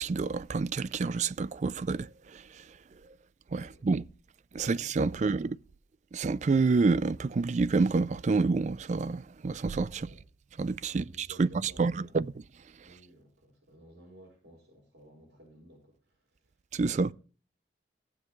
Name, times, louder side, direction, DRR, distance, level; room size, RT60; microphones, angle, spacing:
voice 1, 0.0-2.4 3.5-4.0 4.5-5.6 6.1-10.1 10.6-12.3 16.7-17.1, right 4 dB, 40° right, 0.4 m, -28 dB
voice 2, 9.9-10.2 10.8-12.1 12.8-16.5, right 1 dB, 90° right, 5.0 m, -56 dB
15.5 x 7.4 x 3.1 m
head